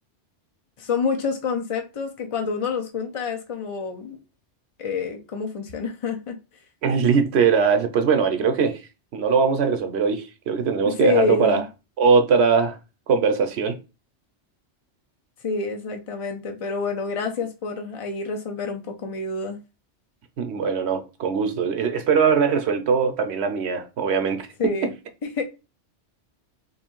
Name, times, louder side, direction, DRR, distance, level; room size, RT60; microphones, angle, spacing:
voice 1, 0.8-4.2 4.8-6.4 10.8-11.6 15.4-19.6 24.6-24.9 25.4-25.5, left 5 dB, 50° left, 0.4 m, -27 dB
voice 2, 6.8-8.8 9.1-11.6 12.0-12.8 13.1-13.7 20.4-24.5, right 5 dB, 70° right, 0.9 m, -21 dB
3.1 x 2.6 x 4.4 m
omnidirectional pair, 1.2 m